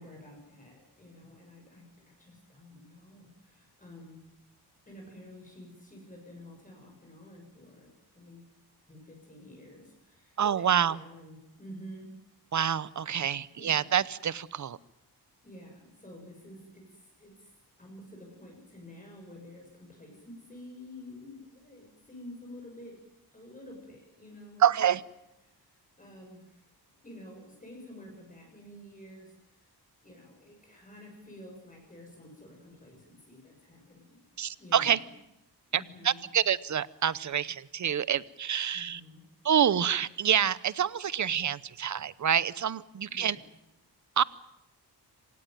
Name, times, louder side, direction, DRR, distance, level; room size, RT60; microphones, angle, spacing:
voice 1, 0.0-4.2 4.9-8.5 8.9-12.1 13.5-13.9 15.4-17.5 17.8-23.0 23.3-24.9 25.4-26.7 27.0-29.7 30.0-34.2 34.6-35.1 35.7-36.2 38.7-39.2 43.1-43.4, left 1 dB, 20° left, 0 dB, 6.9 m, -50 dB
voice 2, 10.4-11.0 12.5-14.8 24.6-25.0 34.4-35.0 35.7-39.0 39.4-43.4 44.2-44.3, right 9 dB, 45° right, 19 dB, 0.8 m, -27 dB
26.5 x 18.5 x 9.4 m, 0.89 s
wide cardioid pair, 140°, 40 cm